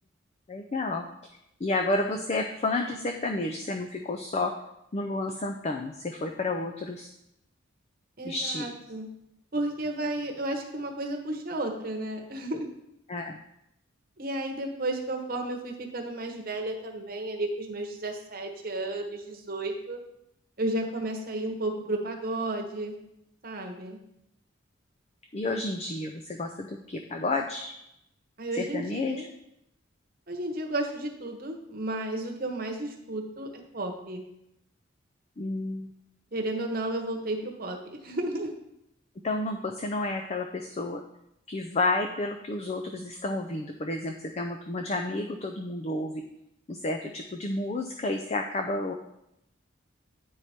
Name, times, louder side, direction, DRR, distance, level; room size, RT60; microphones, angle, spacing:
voice 1, 0.5-1.0 1.6-4.5 4.9-7.1 8.2-8.7 13.1-13.4 25.3-27.7 28.5-29.2 35.4-35.9 39.2-41.0 41.5-46.2 46.7-48.9, left 2 dB, 30° left, 4 dB, 0.4 m, -31 dB
voice 2, 8.2-9.1 9.5-12.7 14.2-20.0 20.6-22.9 23.4-24.0 28.4-29.3 30.3-34.2 36.3-38.5, right 1 dB, 45° right, 2 dB, 1.1 m, -33 dB
9.1 x 4.7 x 4.3 m, 0.82 s
head